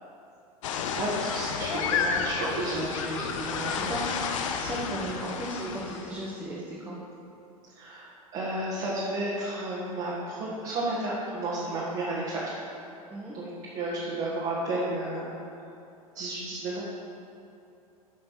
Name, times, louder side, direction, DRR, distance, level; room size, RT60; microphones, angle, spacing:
sound 1, 0.6-6.3, left 6 dB, 55° left, 0.7 m, -31 dB
voice 1, 1.0-3.3 3.6-3.8 7.7-12.4 13.3-15.3 16.1-16.8, right 2 dB, 35° right, -8 dB, 1.8 m, -32 dB
voice 2, 2.7-7.0 13.1-13.4, right 1 dB, 10° right, -8 dB, 1.5 m, -36 dB
11.5 x 5.4 x 4.3 m, 2.6 s
figure-of-eight pair, 90°, 19 cm